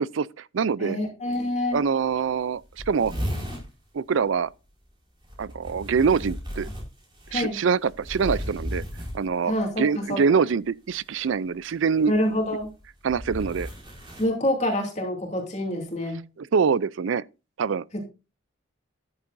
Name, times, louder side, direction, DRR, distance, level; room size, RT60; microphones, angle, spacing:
voice 1, 0.0-1.0 1.7-3.1 3.9-4.5 5.4-6.7 7.3-8.8 9.1-12.1 13.0-13.7 16.4-17.2 17.6-17.8, right 6 dB, 70° right, 0.4 m, -24 dB
voice 2, 0.8-1.8 7.3-7.6 9.5-10.2 12.1-12.7 14.2-16.2 17.9-18.0, left 1 dB, 35° left, 2.9 m, -26 dB
sound 1, 1.3-1.4 1.7-1.8 2.1-2.2 2.4-3.7 5.2-9.6 10.9-11.2 12.0-14.3, equal, 25° right, 4.9 m, -35 dB
13.0 x 11.0 x 2.6 m
head